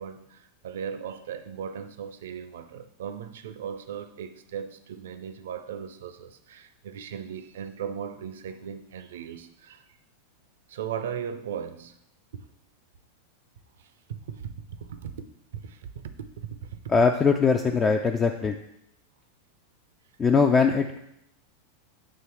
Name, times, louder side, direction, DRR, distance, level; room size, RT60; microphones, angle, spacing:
voice 1, 0.0-9.9 10.7-11.9 12.3-12.5 13.8-15.1 15.6-16.8, right 8 dB, 60° right, 10 dB, 0.5 m, -38 dB
voice 2, 16.9-18.6 20.2-21.0, left 5 dB, 20° left, 5 dB, 0.4 m, -21 dB
7.7 x 3.0 x 4.4 m, 0.77 s
figure-of-eight pair, 90°, 0 cm